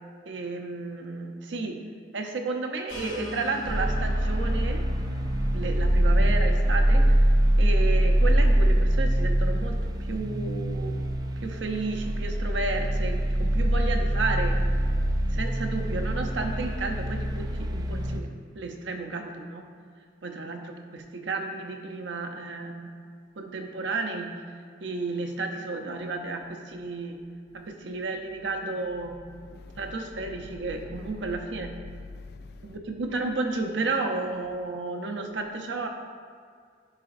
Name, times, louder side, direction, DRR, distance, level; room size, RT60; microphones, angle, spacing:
voice 1, 0.3-1.8 2.1-4.8 5.5-7.2 7.6-10.9 11.4-14.6 15.3-18.3 18.5-19.6 20.2-22.9 23.4-24.3 24.8-27.2 27.5-29.1 29.8-31.7 32.6-35.9, right 3 dB, 70° right, 0.6 m, -32 dB
sound 1, 2.9-8.3, equal, 85° left, 1.7 m, -43 dB
sound 2, 3.7-18.2, right 1 dB, 20° right, 0.3 m, -24 dB
voice 2, 29.3-29.9 30.2-30.3 30.6-31.4 31.9-32.8, left 3 dB, 55° left, 0.3 m, -44 dB
9.7 x 4.9 x 2.5 m
head